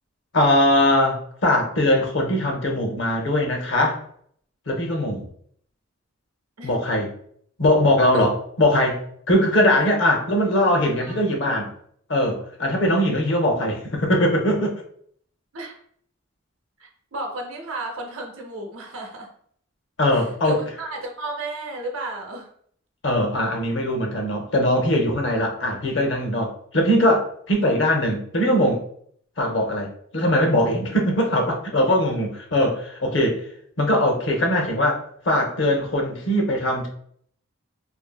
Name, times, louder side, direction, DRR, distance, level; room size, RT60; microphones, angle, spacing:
voice 1, 0.3-4.0 4.7-5.2 6.6-7.1 7.6-11.7 12.1-14.7 20.0-20.6 23.0-28.8 29.4-33.4 33.8-36.9, left 1 dB, 60° left, 2 dB, 0.6 m, -21 dB
voice 2, 16.8-19.3 20.1-22.5 25.2-25.4, right 2 dB, 85° right, 2 dB, 0.7 m, -33 dB
2.6 x 2.6 x 2.2 m, 0.62 s
head